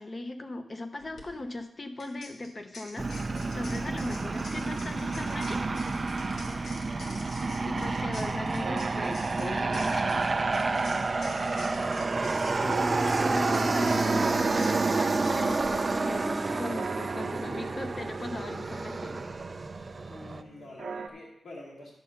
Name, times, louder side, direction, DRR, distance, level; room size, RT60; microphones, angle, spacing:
voice 1, 0.0-5.7 7.6-10.1 12.6-19.2, left 2 dB, 25° left, 7 dB, 0.8 m, -38 dB
sound 1, 1.0-1.2 2.0-15.7, left 2 dB, 90° left, 1.6 m, -48 dB
Aircraft, 3.0-20.4, right 3 dB, 30° right, 0.4 m, -29 dB
voice 2, 6.7-7.7 20.1-21.9, left 1 dB, 65° left, -3 dB, 2.4 m, -47 dB
sound 2, 7.8-21.1, right 5 dB, 80° right, 0.9 m, -43 dB
10.5 x 6.8 x 5.4 m, 0.82 s
wide cardioid pair, 180°, 0 cm